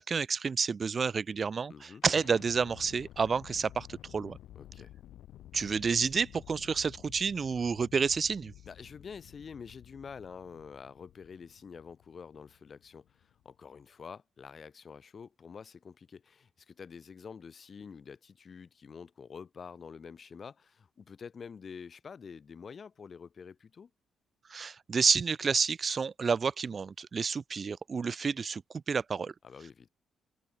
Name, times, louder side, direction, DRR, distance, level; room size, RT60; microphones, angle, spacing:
voice 1, 0.0-4.4 5.5-8.5 24.5-28.6 28.9-29.3, right 5 dB, 40° right, 0.8 m, -30 dB
voice 2, 1.7-2.0 4.5-4.9 8.7-23.9 29.4-29.9, left 6 dB, 45° left, 1.8 m, -47 dB
sound 1, 2.0-13.9, left 12 dB, 80° left, 1.6 m, -53 dB
open air
cardioid pair, 90°, 0 cm